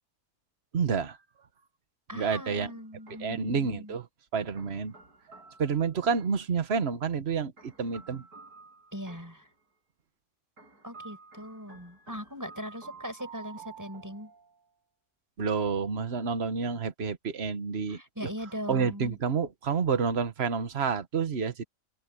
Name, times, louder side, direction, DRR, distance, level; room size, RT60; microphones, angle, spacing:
voice 1, 0.7-1.2 2.1-2.7 3.2-4.1 4.3-4.9 5.6-8.2 15.4-18.0 18.7-21.6, right 6 dB, 45° right, 1.5 m, -29 dB
voice 2, 2.1-4.0 8.9-9.4 10.8-14.3 17.9-19.2, equal, 10° right, 7.2 m, -40 dB
sound 1, 2.3-3.5 4.6-6.5 7.6-9.5 10.6-14.9, right 5 dB, 85° right, 7.3 m, -51 dB
open air
omnidirectional pair, 1.6 m